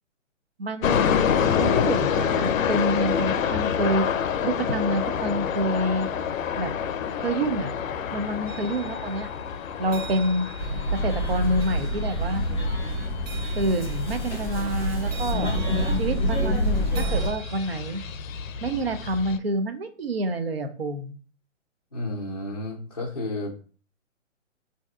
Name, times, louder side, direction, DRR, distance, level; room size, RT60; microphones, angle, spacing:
voice 1, 0.6-1.1 1.4-4.0 4.4-6.1 6.6-6.7 7.2-7.7 8.1-9.3 9.8-10.5 10.9-12.4 13.6-15.5 16.0-18.0 18.6-21.1, right 1 dB, 50° right, 8 dB, 0.6 m, -27 dB
sound 1, 0.8-19.4, left 7 dB, 90° left, 0.5 m, -28 dB
sound 2, 8.5-18.2, right 5 dB, 80° right, 1.4 m, -46 dB
sound 3, 10.6-17.3, equal, 10° right, 0.7 m, -26 dB
voice 2, 21.9-23.5, left 2 dB, 35° left, -4 dB, 0.4 m, -32 dB
4.2 x 2.7 x 2.4 m, 0.39 s
hypercardioid pair, 175°, 38 cm